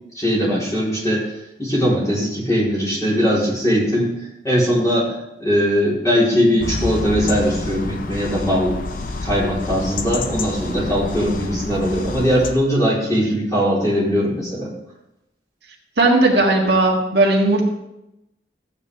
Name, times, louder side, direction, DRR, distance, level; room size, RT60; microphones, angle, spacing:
voice 1, 0.1-1.3 1.6-4.1 4.4-5.1 5.4-8.8 9.2-14.7, equal, 20° left, -7 dB, 4.1 m, -20 dB
sound 1, 6.6-12.5, left 3 dB, 45° left, 0.7 m, -28 dB
voice 2, 16.0-17.6, right 2 dB, 60° right, -1 dB, 1.7 m, -16 dB
14.0 x 8.6 x 3.6 m, 0.89 s
head